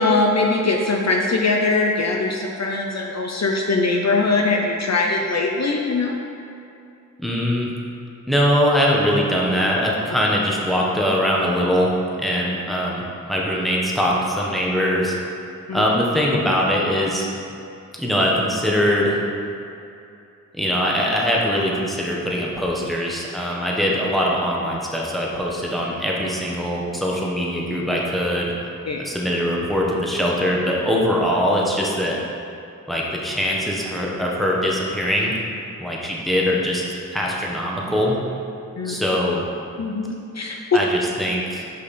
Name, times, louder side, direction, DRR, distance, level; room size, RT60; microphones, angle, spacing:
voice 1, 0.0-6.2 15.7-15.8 28.9-29.0 38.8-39.0 39.8-40.6, left 3 dB, 55° left, 1 dB, 0.6 m, -21 dB
voice 2, 7.2-7.7 8.3-11.9 12.2-13.0 13.3-15.1 15.7-17.2 18.0-19.2 20.5-28.5 29.0-32.2 32.9-35.4 35.8-36.8 37.1-38.2 38.8-39.4 40.7-41.7, equal, ahead, -4 dB, 1.1 m, -22 dB
5.4 x 5.2 x 4.2 m, 2.6 s
cardioid pair, 50°, 32 cm